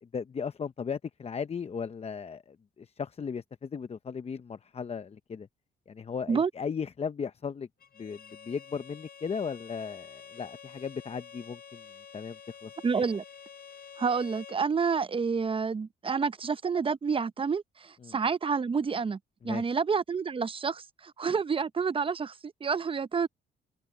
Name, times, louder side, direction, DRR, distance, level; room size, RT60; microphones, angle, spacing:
voice 1, 0.1-5.5 5.9-7.7 8.0-11.8 12.1-13.0 18.0-18.1 19.4-19.8, left 6 dB, 30° left, 0.7 m, -36 dB
Bowed string instrument, 7.8-14.7, left 7 dB, 50° left, 4.6 m, -49 dB
voice 2, 12.8-13.2 14.0-19.2 19.4-23.3, right 5 dB, 25° right, 0.6 m, -29 dB
cardioid pair, 90°, 20 cm